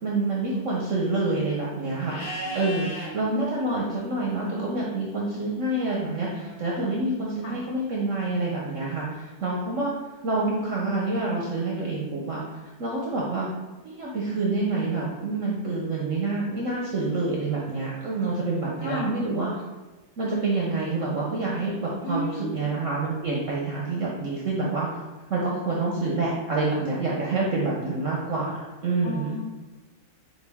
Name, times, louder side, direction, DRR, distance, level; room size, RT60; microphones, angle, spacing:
voice 1, 0.0-9.9 10.2-12.4 12.8-13.5 13.8-19.5 20.2-24.9 25.3-29.4, right 3 dB, 65° right, -4 dB, 0.7 m, -27 dB
Livestock farm animals working animals, 2.0-3.1 5.9-6.9, equal, 50° left, 1.8 m, -36 dB
voice 2, 2.5-2.9 3.2-3.4 7.4-7.6 18.7-19.2 22.0-22.7 29.0-29.4, left 1 dB, 80° left, -2 dB, 1.8 m, -33 dB
6.6 x 2.3 x 3.4 m, 1.2 s
omnidirectional pair, 2.0 m